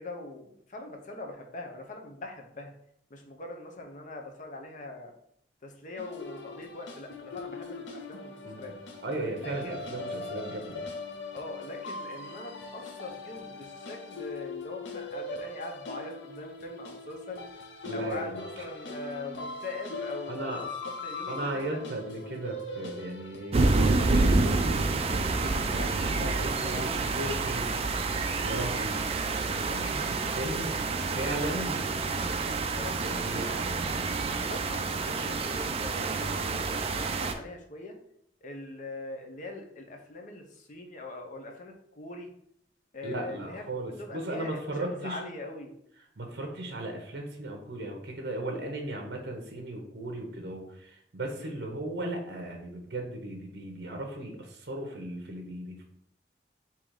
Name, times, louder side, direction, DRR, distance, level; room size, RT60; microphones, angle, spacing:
voice 1, 0.0-2.7 3.1-5.1 5.6-8.7 9.4-10.2 11.3-17.4 17.9-21.8 22.1-22.3 25.7-27.0 29.0-29.1 31.5-31.8 32.2-33.0 34.3-38.0 38.4-42.3 42.9-45.7 51.4-51.7, left 2 dB, 45° left, 3 dB, 0.7 m, -42 dB
sound 1, 6.0-24.7, left 2 dB, 85° left, 0.6 m, -40 dB
voice 2, 9.0-10.8 17.8-18.6 20.3-20.6 21.3-27.8 28.4-29.0 29.7-30.8 31.0-31.9 33.0-33.7 43.0-45.2 46.2-55.8, right 1 dB, 65° right, 3 dB, 0.7 m, -36 dB
sound 2, 23.5-37.3, right 3 dB, 35° right, 0.4 m, -28 dB
3.8 x 2.9 x 4.7 m, 0.72 s
head